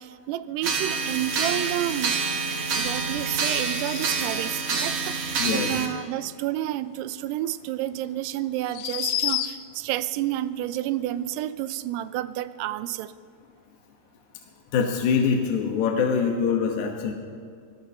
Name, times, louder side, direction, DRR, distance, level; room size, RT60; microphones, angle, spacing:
voice 1, 0.0-2.2 2.7-13.1, right 13 dB, 85° right, 14 dB, 2.6 m, -30 dB
sound 1, 0.6-5.9, right 4 dB, 60° right, 1.5 m, -27 dB
sound 2, 3.3-4.4 7.4-7.5 8.6-9.9, left 13 dB, 85° left, 2.0 m, -31 dB
voice 2, 5.4-5.7 14.7-17.1, left 6 dB, 65° left, 1 dB, 2.1 m, -24 dB
26.0 x 18.5 x 2.8 m, 2.2 s
omnidirectional pair, 4.7 m